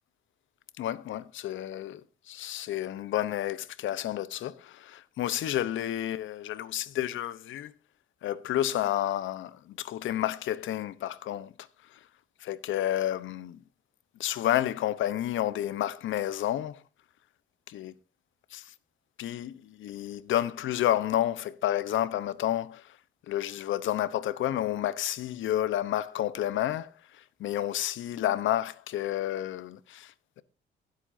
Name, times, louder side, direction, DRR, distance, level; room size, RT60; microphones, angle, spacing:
voice 1, 0.8-2.0 2.3-7.7 8.2-11.5 12.4-13.6 14.2-16.8 17.7-17.9 18.5-18.6 19.2-22.8 23.3-26.9 27.4-30.1, left 12 dB, 75° left, 0.9 m, -30 dB
23.0 x 8.1 x 2.7 m
cardioid pair, 90°, 20 cm